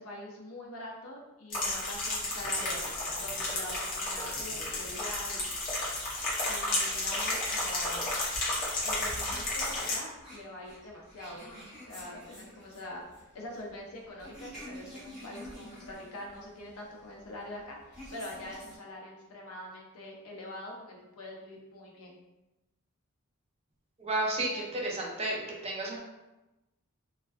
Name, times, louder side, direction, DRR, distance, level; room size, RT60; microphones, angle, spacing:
voice 1, 0.0-5.5 6.5-8.1 8.8-11.6 11.9-13.0 13.3-22.2, left 1 dB, 75° left, -1 dB, 0.6 m, -44 dB
sound 1, 1.5-10.0, left 2 dB, 40° left, 0.7 m, -32 dB
sound 2, 9.0-18.8, equal, 5° right, 1.0 m, -49 dB
voice 2, 24.0-26.0, right 2 dB, 30° right, -2 dB, 0.4 m, -32 dB
2.5 x 2.2 x 2.2 m, 1.0 s
head